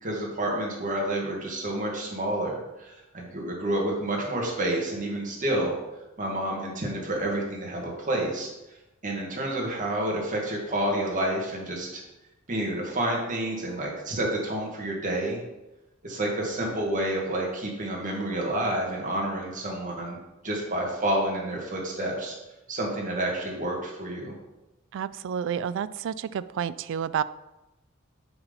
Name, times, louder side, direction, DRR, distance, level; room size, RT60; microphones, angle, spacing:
voice 1, 0.0-5.7 6.2-8.5 9.0-11.9 12.5-15.4 16.0-20.2 20.4-22.4 22.7-24.3, right 1 dB, 40° right, -1 dB, 1.7 m, -29 dB
voice 2, 24.9-27.2, right 8 dB, 60° right, 17 dB, 0.3 m, -30 dB
6.9 x 4.1 x 5.4 m, 0.98 s
head